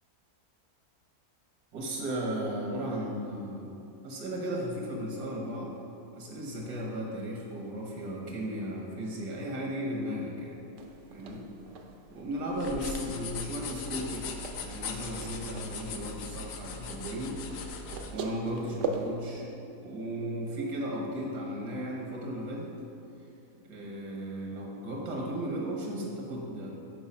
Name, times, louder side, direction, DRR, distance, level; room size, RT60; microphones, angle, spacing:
voice 1, 1.7-5.7 6.1-10.6 11.1-11.5 12.1-14.3 14.6-17.4 18.1-22.7 23.6-26.7, right 1 dB, 85° right, -2 dB, 1.5 m, -35 dB
sound 1, 10.8-19.2, right 3 dB, 65° right, 0.7 m, -42 dB
sound 2, 12.5-18.1, left 5 dB, 70° left, 0.9 m, -39 dB
6.1 x 4.5 x 5.4 m, 2.7 s
omnidirectional pair, 1.7 m